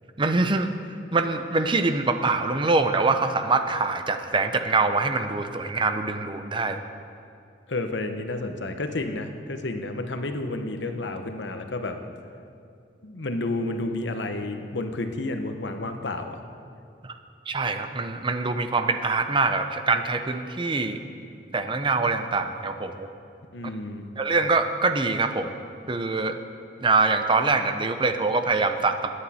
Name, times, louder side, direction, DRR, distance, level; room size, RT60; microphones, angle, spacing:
voice 1, 0.2-0.7 1.1-6.8 17.0-17.1 17.5-21.0 21.5-23.1 24.2-25.5 25.9-26.4 26.8-29.1, right 3 dB, 25° right, 8 dB, 0.7 m, -24 dB
voice 2, 7.7-12.0 13.0-16.4 23.5-24.1, left 2 dB, 75° left, 6 dB, 1.0 m, -31 dB
20.0 x 9.7 x 4.3 m, 2.5 s
head